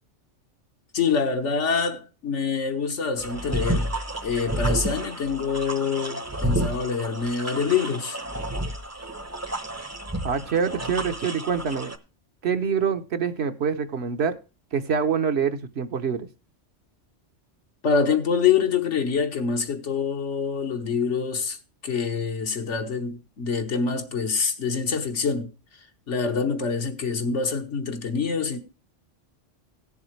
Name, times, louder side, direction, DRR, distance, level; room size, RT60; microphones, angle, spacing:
voice 1, 0.9-3.9 4.2-8.2 17.8-21.6 21.8-25.5 26.1-28.6, left 5 dB, 75° left, 1.6 m, -25 dB
sound 1, 3.2-12.0, right 1 dB, 15° right, 0.7 m, -30 dB
voice 2, 10.2-11.9 12.4-14.4 14.7-16.3, right 6 dB, 60° right, 1.1 m, -25 dB
17.5 x 7.2 x 3.1 m
omnidirectional pair, 1.2 m